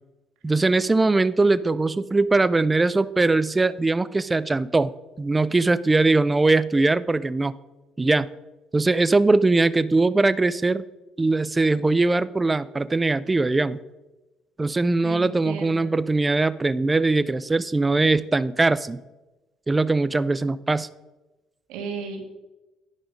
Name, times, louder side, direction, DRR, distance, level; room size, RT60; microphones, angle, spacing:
voice 1, 0.4-7.5 8.0-8.3 8.7-10.8 11.2-13.8 14.6-19.0 19.7-20.9, right 3 dB, 20° right, 16 dB, 0.4 m, -21 dB
voice 2, 15.0-16.0 20.4-20.5 21.7-22.2, right 5 dB, 85° right, 4 dB, 1.6 m, -35 dB
10.5 x 5.1 x 5.0 m, 1.1 s
cardioid pair, 90°, 0 cm